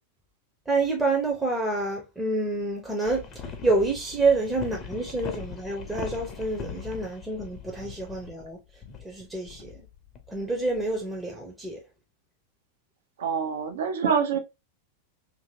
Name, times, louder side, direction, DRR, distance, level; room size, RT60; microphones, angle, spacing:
voice 1, 0.7-8.6 9.0-9.8 10.3-11.8, right 3 dB, 10° right, 0.7 m, -28 dB
sound 1, 3.1-11.0, left 6 dB, 30° left, 0.7 m, -40 dB
voice 2, 13.2-14.4, right 6 dB, 60° right, 0.7 m, -25 dB
2.8 x 2.7 x 2.7 m
figure-of-eight pair, 90°, 0 cm